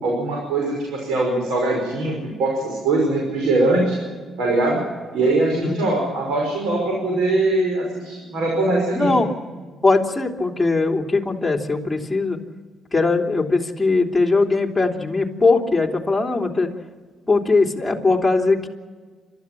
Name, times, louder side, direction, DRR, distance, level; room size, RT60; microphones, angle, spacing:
voice 1, 0.0-4.0 4.4-4.8 5.1-9.2, right 2 dB, 90° right, 0 dB, 5.6 m, -21 dB
voice 2, 8.9-9.3 9.8-12.4 12.9-16.7 17.3-18.7, left 3 dB, 10° left, 0 dB, 3.2 m, -20 dB
28.5 x 13.5 x 7.6 m, 1.5 s
cardioid pair, 90°, 0 cm